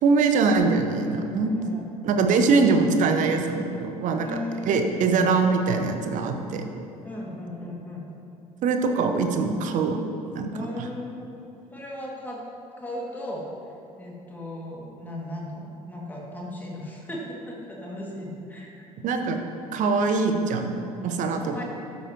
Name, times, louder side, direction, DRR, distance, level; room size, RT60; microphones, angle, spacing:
voice 1, 0.0-1.5 2.0-4.4 4.7-6.7 8.6-10.0 10.3-10.5 19.0-19.4 19.7-20.8 21.0-21.5, right 4 dB, 40° right, 5 dB, 0.9 m, -22 dB
voice 2, 0.9-1.9 4.2-4.9 7.0-8.0 10.5-12.4 12.8-13.5 14.0-18.9 21.4-21.6, left 1 dB, 10° left, -3 dB, 2.2 m, -37 dB
12.5 x 8.4 x 3.0 m, 2.9 s
figure-of-eight pair, 65°, 19 cm